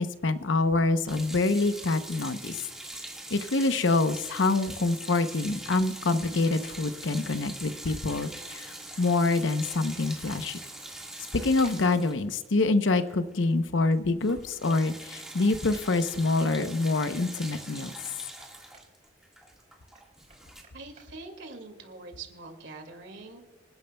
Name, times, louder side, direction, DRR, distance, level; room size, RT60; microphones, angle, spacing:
voice 1, 0.0-2.6 3.3-10.6 11.3-17.9, left 3 dB, 85° left, 11 dB, 0.8 m, -26 dB
sound 1, 1.1-13.5 13.7-13.9 14.2-20.6, right 1 dB, 5° right, 1.6 m, -43 dB
sound 2, 3.7-3.8 5.2-5.3 6.5-6.6 7.8-8.0 10.2-10.4 11.6-11.8 12.9-13.1 15.4-15.5 15.7-16.5 17.7-18.9 19.9-21.1, right 4 dB, 35° right, 4.4 m, -54 dB
voice 2, 20.7-23.4, right 3 dB, 75° right, 4 dB, 2.1 m, -44 dB
26.5 x 10.5 x 2.2 m, 1.3 s
head